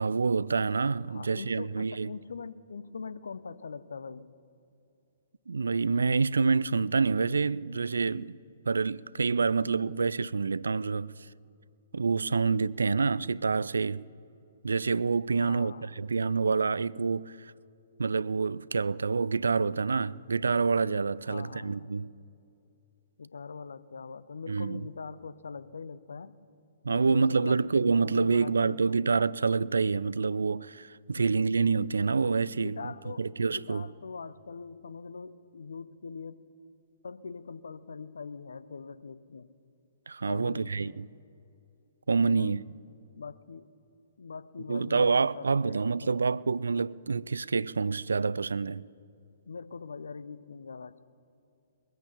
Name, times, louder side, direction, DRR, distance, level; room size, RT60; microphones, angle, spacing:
voice 1, 0.0-2.1 5.5-8.4 8.7-11.1 11.9-14.0 14.6-17.5 18.0-22.1 24.5-24.8 26.8-32.9 33.2-33.8 40.1-41.1 42.1-42.6 44.7-48.8, right 4 dB, 70° right, 0.3 m, -27 dB
voice 2, 1.1-4.3 15.4-15.9 21.3-21.9 23.2-26.3 26.9-29.0 31.2-31.5 32.5-36.4 37.0-39.5 40.3-41.0 42.2-42.6 43.2-43.7 44.2-46.2 49.5-51.0, left 5 dB, 70° left, 0.7 m, -42 dB
21.5 x 9.2 x 7.1 m
figure-of-eight pair, 120°, 0 cm